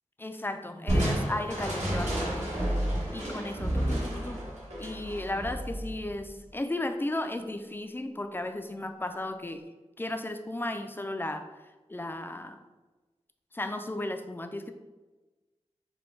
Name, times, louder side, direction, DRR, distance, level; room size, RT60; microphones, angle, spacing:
voice 1, 0.2-2.5 3.1-4.4 4.8-9.6 10.0-11.5 11.9-12.6 13.5-14.7, left 1 dB, 20° left, 7 dB, 0.4 m, -35 dB
Crushing, 0.9-6.3, right 1 dB, 75° right, 1.4 m, -30 dB
5.2 x 2.2 x 4.4 m, 1.2 s
wide cardioid pair, 90°, 12 cm